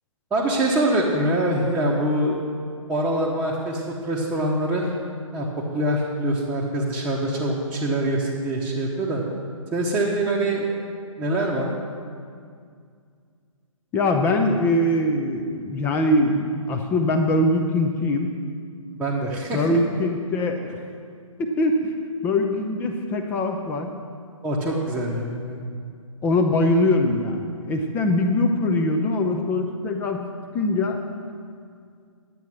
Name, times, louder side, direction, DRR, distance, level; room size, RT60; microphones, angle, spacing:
voice 1, 0.3-2.4 2.9-4.9 5.3-5.5 5.7-9.2 9.7-10.7 11.2-11.7 18.9-19.8 24.4-25.6, right 1 dB, 5° right, -6 dB, 1.0 m, -24 dB
voice 2, 13.9-18.3 19.5-20.7 21.4-22.0 22.2-23.9 26.2-30.3 30.5-31.0, left 1 dB, 10° left, 4 dB, 0.5 m, -22 dB
10.5 x 8.2 x 6.1 m, 2.2 s
figure-of-eight pair, 140°, 18 cm